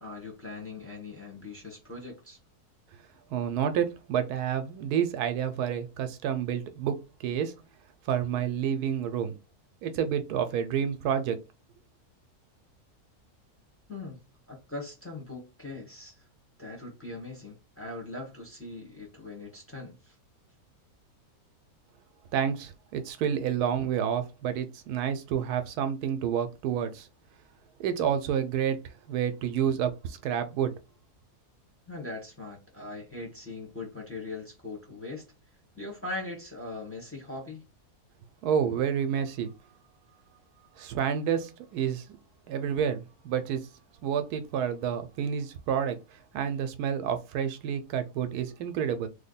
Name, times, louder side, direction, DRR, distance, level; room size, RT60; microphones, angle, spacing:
voice 1, 0.0-2.4 13.9-14.2 14.5-16.2 16.6-20.1 31.9-35.2 35.8-37.6, left 2 dB, 10° left, 1.0 m, -40 dB
voice 2, 3.3-7.5 8.1-9.3 9.8-11.4 22.3-27.1 27.8-30.7 38.4-39.5 40.8-42.1 42.5-43.7 44.0-49.1, right 8 dB, 85° right, 1.1 m, -29 dB
3.2 x 2.1 x 4.0 m
omnidirectional pair, 1.6 m